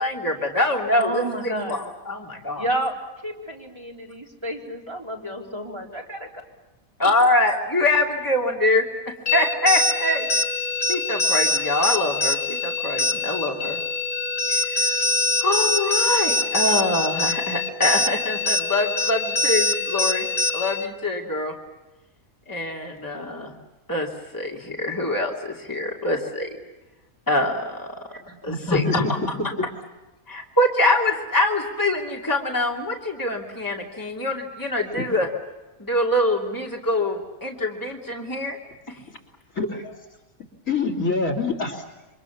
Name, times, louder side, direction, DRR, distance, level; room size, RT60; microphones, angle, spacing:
voice 1, 0.0-2.7 7.0-8.8 9.3-10.3 10.9-13.8 14.5-15.0 15.4-20.3 20.5-21.5 22.5-23.5 23.9-26.5 27.3-28.0 28.3-29.4 30.3-35.3 35.8-38.6 38.9-39.0, left 1 dB, 15° left, -1 dB, 2.9 m, -24 dB
voice 2, 0.9-1.8 2.5-2.9 3.2-6.3, right 1 dB, 20° right, -2 dB, 4.5 m, -30 dB
sound 1, 9.3-20.9, left 2 dB, 35° left, 1.6 m, -24 dB
voice 3, 28.5-28.9 35.0-35.1 39.6-40.0 40.7-41.8, left 4 dB, 70° left, 5 dB, 3.7 m, -26 dB
28.0 x 25.5 x 7.3 m, 1.1 s
omnidirectional pair, 1.4 m